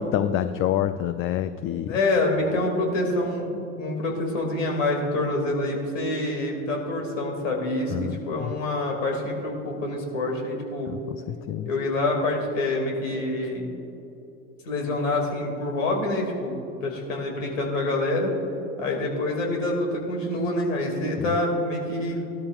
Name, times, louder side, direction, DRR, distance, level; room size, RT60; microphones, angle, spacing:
voice 1, 0.0-2.0 3.5-3.7 7.9-8.5 10.9-11.7 21.2-21.4, left 11 dB, 35° left, 12 dB, 0.4 m, -28 dB
voice 2, 1.8-10.9 11.6-13.7 14.6-18.3 18.8-22.2, left 2 dB, 75° left, 1 dB, 2.5 m, -26 dB
17.0 x 12.5 x 2.5 m, 2.9 s
hypercardioid pair, 70°, 39 cm